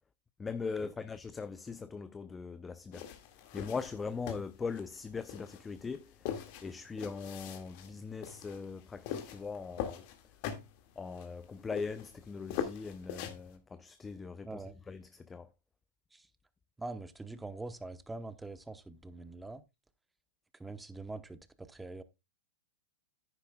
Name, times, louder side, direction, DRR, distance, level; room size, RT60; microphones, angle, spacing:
voice 1, 0.4-3.1 3.4-10.1 11.0-15.5, left 5 dB, 15° left, 0.5 m, -41 dB
sound 1, 2.9-13.5, left 9 dB, 50° left, 1.9 m, -42 dB
voice 2, 14.4-14.8 16.1-16.2 16.8-19.6 20.6-22.0, right 2 dB, 5° right, 0.9 m, -44 dB
10.0 x 9.8 x 2.2 m
hypercardioid pair, 125°, 0 cm